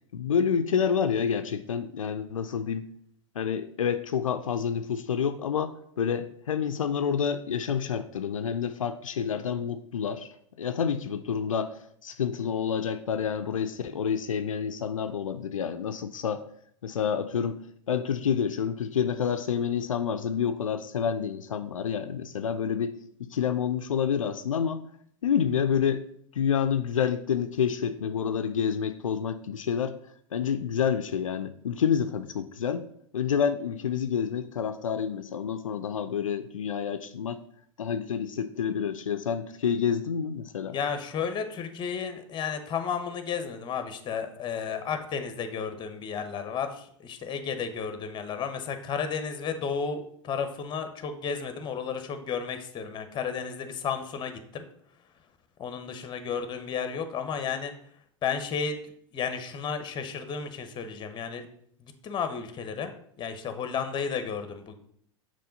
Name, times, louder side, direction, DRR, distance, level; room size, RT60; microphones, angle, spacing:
voice 1, 0.1-2.8 3.4-16.4 16.8-17.6 17.9-24.9 25.2-26.0 26.3-29.9 30.3-32.9 33.1-37.4 37.8-40.8, left 7 dB, 85° left, 9 dB, 0.4 m, -28 dB
voice 2, 40.7-54.6 55.6-57.7 58.2-58.8 59.1-61.5 62.0-62.9 63.2-64.7, left 6 dB, 30° left, 9 dB, 0.8 m, -33 dB
6.7 x 3.2 x 5.1 m, 0.66 s
hypercardioid pair, 90°, 16 cm